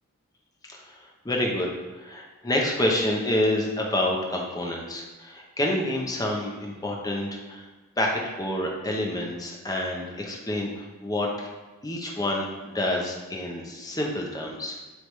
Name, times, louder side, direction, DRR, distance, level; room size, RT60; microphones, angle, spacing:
voice 1, 1.2-1.7 2.0-7.6 8.0-11.5 11.8-14.7, left 1 dB, 15° left, -1 dB, 0.9 m, -28 dB
8.0 x 3.6 x 3.2 m, 1.2 s
head